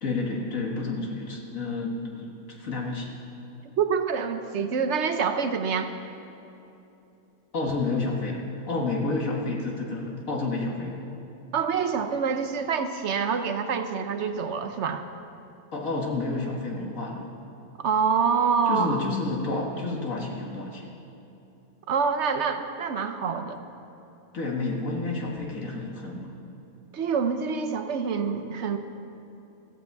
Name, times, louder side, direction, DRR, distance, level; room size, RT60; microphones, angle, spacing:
voice 1, 0.0-3.1 7.5-11.0 15.7-17.3 18.6-20.9 24.3-26.3, left 3 dB, 65° left, -1 dB, 2.0 m, -30 dB
voice 2, 3.8-5.9 11.5-15.0 17.8-19.0 21.9-23.6 26.9-28.8, right 6 dB, 55° right, 8 dB, 1.1 m, -26 dB
16.5 x 14.5 x 4.7 m, 2.9 s
omnidirectional pair, 1.5 m